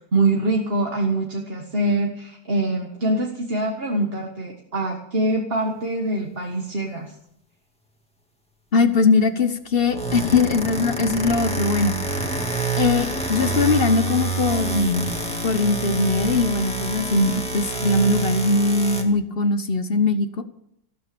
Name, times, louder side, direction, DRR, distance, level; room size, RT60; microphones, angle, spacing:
voice 1, 0.1-7.1, right 2 dB, 35° right, 1 dB, 1.9 m, -24 dB
voice 2, 8.7-12.0 12.8-15.1 15.4-20.4, left 3 dB, 40° left, 10 dB, 1.0 m, -21 dB
sound 1, 9.7-19.0, right 3 dB, 5° left, 2.0 m, -27 dB
sound 2, 10.0-18.5, left 8 dB, 85° left, 1.7 m, -40 dB
15.0 x 13.0 x 7.0 m, 0.74 s
omnidirectional pair, 1.8 m